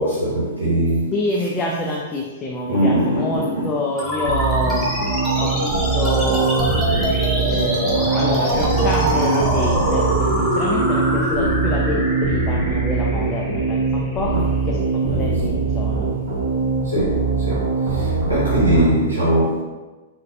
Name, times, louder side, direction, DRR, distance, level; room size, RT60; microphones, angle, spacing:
voice 1, 0.0-1.1 2.7-3.7 14.3-14.4 15.1-15.2 16.8-19.6, right 1 dB, 80° right, -9 dB, 0.9 m, -21 dB
voice 2, 1.1-4.9 5.4-14.4 14.7-14.8 15.2-16.1, left 2 dB, 20° left, -2 dB, 0.3 m, -26 dB
sound 1, 4.0-14.9, right 1 dB, ahead, 0.9 m, -24 dB
sound 2, 4.2-18.9, right 4 dB, 40° right, 1.3 m, -22 dB
3.9 x 2.2 x 2.4 m, 1.2 s
figure-of-eight pair, 105°, 0 cm